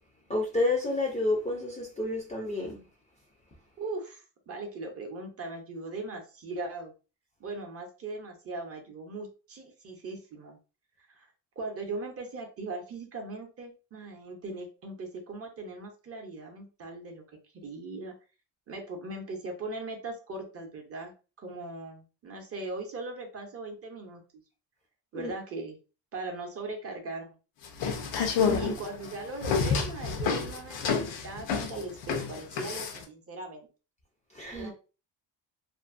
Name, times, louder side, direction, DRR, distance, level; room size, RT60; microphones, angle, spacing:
voice 1, 0.3-2.8 25.1-25.3 28.4-28.7 34.3-34.7, left 2 dB, 15° left, 0.4 m, -30 dB
voice 2, 3.8-6.9 7.4-10.6 11.1-11.3 11.6-17.2 17.5-18.1 18.7-21.1 21.4-24.2 25.1-25.8 26.1-27.3 28.6-33.7 34.5-34.7, right 2 dB, 35° right, 0.6 m, -39 dB
sound 1, 27.6-33.0, left 6 dB, 85° left, 0.8 m, -29 dB
2.5 x 2.5 x 2.4 m
cardioid pair, 175°, 43 cm